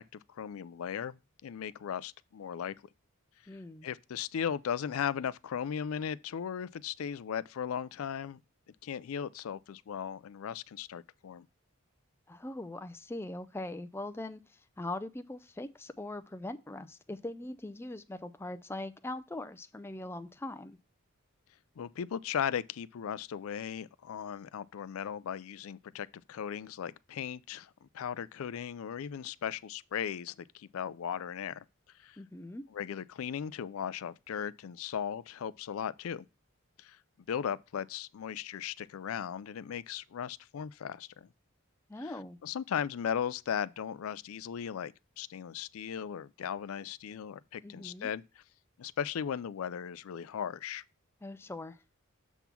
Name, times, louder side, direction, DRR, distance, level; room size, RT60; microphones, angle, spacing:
voice 1, 0.0-2.8 3.8-8.4 8.8-11.5 21.8-31.6 32.0-32.2 32.7-36.3 36.8-37.0 37.3-41.3 42.0-42.1 42.4-48.4 48.8-50.8, left 8 dB, 80° left, 0.4 m, -37 dB
voice 2, 3.5-3.9 12.3-14.4 14.8-20.8 32.2-32.6 41.9-42.4 47.6-48.1 51.2-51.8, left 2 dB, 10° left, 0.4 m, -41 dB
7.2 x 3.6 x 5.8 m
head